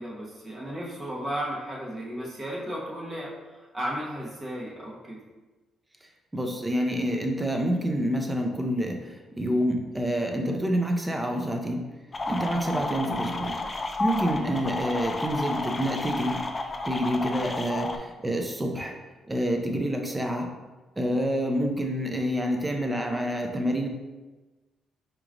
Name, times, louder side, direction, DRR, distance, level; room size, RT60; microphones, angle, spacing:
voice 1, 0.0-3.3 3.7-5.2, equal, 30° right, -4 dB, 1.2 m, -34 dB
voice 2, 6.3-11.8 12.3-13.6 14.0-16.4 16.8-19.0 19.3-20.5 21.0-23.9, equal, 15° right, 3 dB, 0.6 m, -27 dB
sound 1, 12.1-18.0, left 2 dB, 30° left, 0.4 m, -31 dB
4.7 x 3.0 x 2.6 m, 1.2 s
cardioid pair, 90°, 0 cm